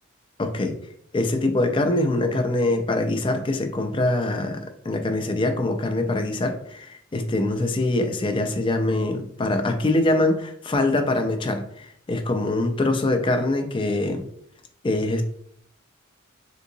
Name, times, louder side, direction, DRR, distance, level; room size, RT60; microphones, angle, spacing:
voice 1, 0.4-0.8 1.1-14.3 14.8-15.2, left 2 dB, 25° left, 6 dB, 0.4 m, -24 dB
3.7 x 2.7 x 2.6 m, 0.66 s
head